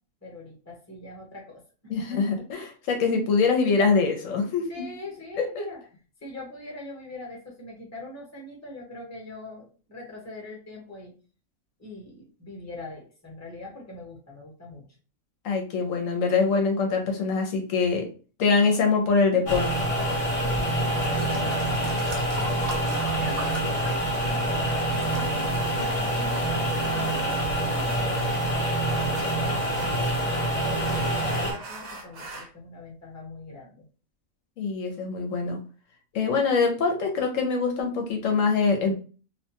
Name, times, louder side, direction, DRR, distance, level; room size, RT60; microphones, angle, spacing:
voice 1, 0.2-1.6 2.1-2.4 4.7-5.8 6.2-11.1 11.8-14.8 20.3-25.3 25.8-30.1 30.6-33.8, left 2 dB, 15° left, -2 dB, 0.9 m, -42 dB
voice 2, 1.9-4.8 5.4-5.7 15.4-18.1 18.4-19.9 34.6-35.6 36.1-38.9, left 4 dB, 75° left, 3 dB, 0.9 m, -24 dB
sound 1, 19.5-31.5, right 1 dB, 40° left, 0.5 m, -26 dB
sound 2, 21.0-24.5 24.7-25.2 25.9-26.0, right 2 dB, 55° right, 0.7 m, -39 dB
sound 3, 24.9-32.5, right 2 dB, 85° right, 1.2 m, -43 dB
2.8 x 2.2 x 2.8 m, 0.37 s
omnidirectional pair, 1.4 m